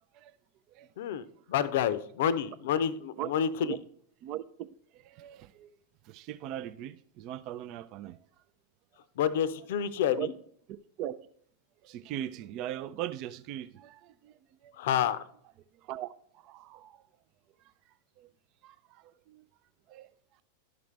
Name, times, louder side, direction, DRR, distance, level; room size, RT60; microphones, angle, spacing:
voice 1, 1.0-3.8 9.2-10.3 14.8-15.2, left 9 dB, 55° left, 0.6 m, -29 dB
voice 2, 4.2-4.7 4.9-5.7 6.0-8.2 10.2-10.3 10.7-11.1 11.8-14.3 14.6-14.7 15.8-16.1 16.4-17.0 18.2-18.3 18.6-19.4 19.9-20.1, right 12 dB, 40° right, 0.4 m, -39 dB
12.0 x 5.9 x 3.3 m
figure-of-eight pair, 90°, 0 cm